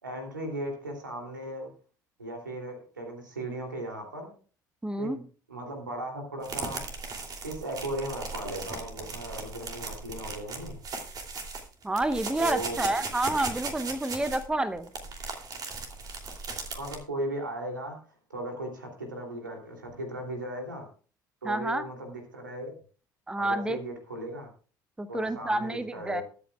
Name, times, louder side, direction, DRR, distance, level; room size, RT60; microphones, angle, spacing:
voice 1, 0.0-1.7 2.2-4.3 5.0-5.2 5.5-6.8 7.4-10.8 12.4-12.9 16.7-20.9 21.4-22.8 23.4-24.5 25.1-26.2, right 1 dB, 80° right, 2 dB, 2.9 m, -37 dB
voice 2, 4.8-5.2 11.8-14.9 21.4-21.8 23.3-23.8 25.0-26.2, right 2 dB, 10° right, 14 dB, 0.8 m, -29 dB
sound 1, 6.4-17.0, right 4 dB, 40° right, 2.9 m, -37 dB
22.0 x 8.6 x 2.4 m, 0.39 s
figure-of-eight pair, 60°, 10 cm